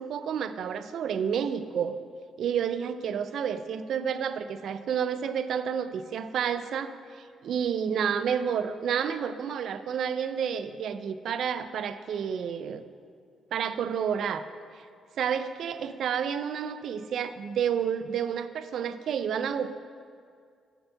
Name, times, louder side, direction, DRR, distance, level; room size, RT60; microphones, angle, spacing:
voice 1, 0.0-2.0 2.4-12.8 13.5-14.5 15.2-19.7, right 7 dB, 70° right, 12 dB, 0.3 m, -30 dB
6.8 x 4.5 x 6.7 m, 2.2 s
cardioid pair, 90°, 0 cm